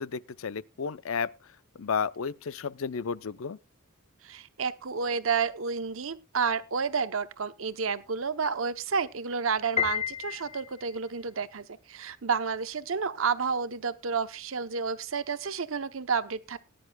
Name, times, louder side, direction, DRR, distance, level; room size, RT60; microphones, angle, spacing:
voice 1, 0.0-1.3 1.7-3.6, left 6 dB, 75° left, 0.6 m, -32 dB
voice 2, 4.2-16.6, right 5 dB, 70° right, 0.8 m, -30 dB
Piano, 9.8-11.1, left 8 dB, 30° left, 0.8 m, -31 dB
19.5 x 10.5 x 2.2 m
head